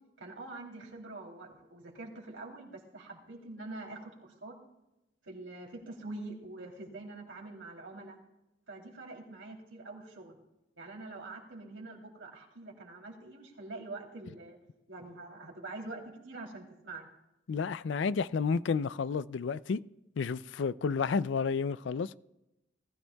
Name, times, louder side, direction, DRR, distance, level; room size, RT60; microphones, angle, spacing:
voice 1, 0.2-4.6 5.2-8.2 8.7-10.4 10.8-14.6 14.9-17.1, right 2 dB, 90° right, 3.0 m, -45 dB
voice 2, 17.5-19.8 20.2-22.1, left 5 dB, 70° left, 0.4 m, -31 dB
19.5 x 13.5 x 2.3 m
head